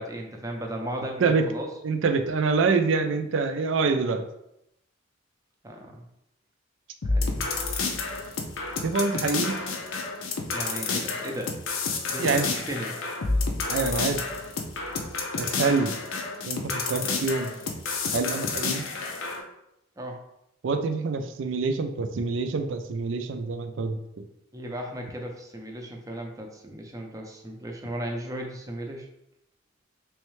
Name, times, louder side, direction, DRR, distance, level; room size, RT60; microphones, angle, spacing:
voice 1, 0.0-1.7 5.6-6.0 7.0-7.5 10.5-11.5 12.1-12.9 20.0-20.2 24.5-29.1, right 1 dB, 15° right, 1 dB, 0.5 m, -36 dB
voice 2, 1.8-4.2 8.8-9.6 12.2-12.5 13.7-14.2 15.4-15.9 16.5-17.5 18.1-18.8 20.6-24.2, right 4 dB, 70° right, 7 dB, 0.4 m, -26 dB
sound 1, 7.0-19.4, left 3 dB, 85° left, 0.6 m, -30 dB
3.4 x 3.2 x 3.1 m, 0.81 s
head